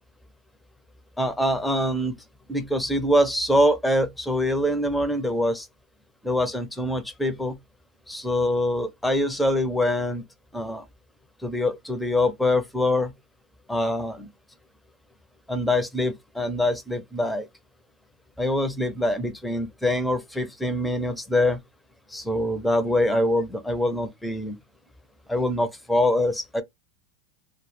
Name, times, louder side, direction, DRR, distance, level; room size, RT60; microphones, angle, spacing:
voice 1, 1.2-2.2 2.5-5.7 6.2-7.6 8.1-10.2 10.5-10.8 11.4-13.1 13.7-14.3 15.5-17.5 18.4-21.6 22.1-24.6 25.3-26.6, left 1 dB, 5° left, 0.5 m, -24 dB
2.0 x 2.0 x 3.0 m
supercardioid pair, 135°, 0 cm